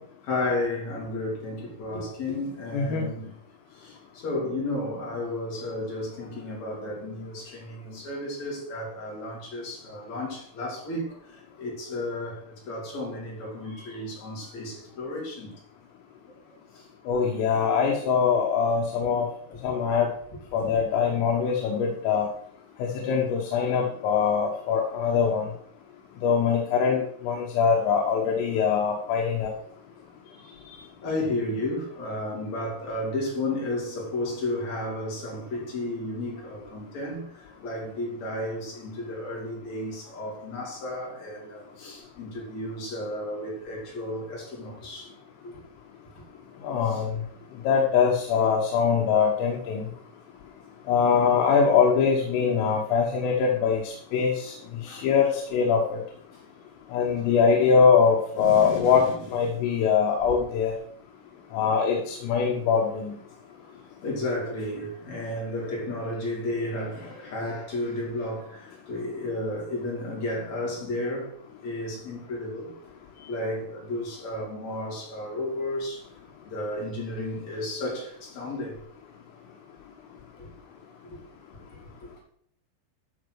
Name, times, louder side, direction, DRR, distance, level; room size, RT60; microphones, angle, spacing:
voice 1, 0.2-3.3 3.7-15.5 16.7-17.3 18.4-18.5 19.5-19.7 20.7-20.8 23.9-24.0 25.4-25.5 30.1-30.2 31.0-45.1 45.4-45.6 46.2-46.3 46.8-47.0 54.1-54.3 54.6-55.1 56.3-56.4 58.4-59.4 63.6-71.4 71.6-72.7 73.3-76.1 76.5-78.8 80.4-80.5 81.0-81.2 81.7-82.2, left 1 dB, 40° left, 4.1 m, -33 dB
voice 2, 2.7-3.1 17.1-19.3 19.6-20.1 20.5-22.3 22.8-25.5 26.2-29.5 46.6-47.1 47.7-49.8 50.9-54.5 54.8-56.0 56.9-59.0 59.3-60.7 61.5-63.1, left 6 dB, 85° left, 3.9 m, -23 dB
13.5 x 5.4 x 6.3 m
omnidirectional pair, 5.7 m